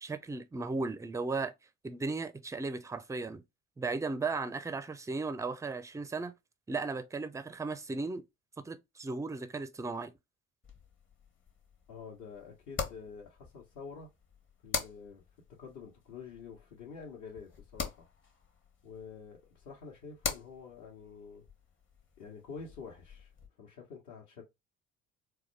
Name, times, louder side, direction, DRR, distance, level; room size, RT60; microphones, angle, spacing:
voice 1, 0.0-1.5 1.8-3.4 3.8-6.3 6.7-8.2 8.6-10.1, right 3 dB, 10° right, 0.4 m, -36 dB
sound 1, 10.6-23.5, left 5 dB, 30° left, 1.1 m, -44 dB
voice 2, 11.9-14.1 14.6-15.2 15.6-18.0 18.8-21.4 22.2-23.3 23.6-24.4, left 5 dB, 55° left, 1.2 m, -48 dB
4.0 x 2.3 x 3.2 m
figure-of-eight pair, 55°, 37 cm